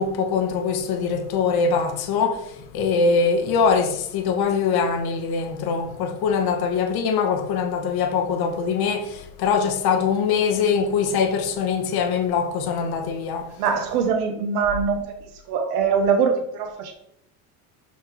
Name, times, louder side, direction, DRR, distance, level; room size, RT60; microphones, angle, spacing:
voice 1, 0.0-2.4 2.7-13.5, left 5 dB, 55° left, 1.3 m, -22 dB
voice 2, 13.6-15.0 15.5-16.9, right 6 dB, 90° right, 1.0 m, -22 dB
5.8 x 4.3 x 4.5 m
supercardioid pair, 100°, 44 cm